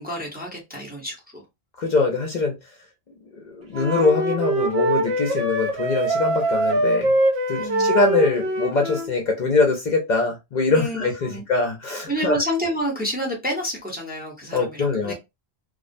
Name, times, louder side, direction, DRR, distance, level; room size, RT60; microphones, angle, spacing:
voice 1, 0.0-1.4 7.6-7.9 10.7-11.4 12.1-15.1, equal, 10° right, 0.7 m, -29 dB
voice 2, 1.8-2.7 3.3-7.2 7.5-12.4 14.5-15.1, left 3 dB, 55° left, 0.6 m, -23 dB
Wind instrument woodwind instrument, 3.7-9.1, right 1 dB, 75° right, 1.0 m, -23 dB
2.4 x 2.0 x 2.5 m
omnidirectional pair, 1.0 m